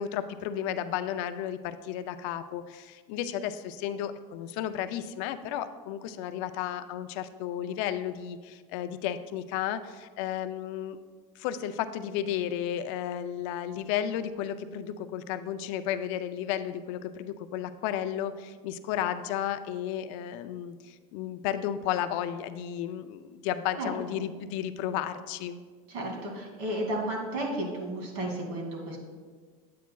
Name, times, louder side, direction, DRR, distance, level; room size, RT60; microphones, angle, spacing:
voice 1, 0.0-11.0 11.4-25.6, left 10 dB, 65° left, 10 dB, 0.4 m, -33 dB
voice 2, 25.9-29.0, right 1 dB, 60° right, -1 dB, 2.3 m, -33 dB
9.2 x 8.4 x 2.3 m, 1.5 s
cardioid pair, 170°, 18 cm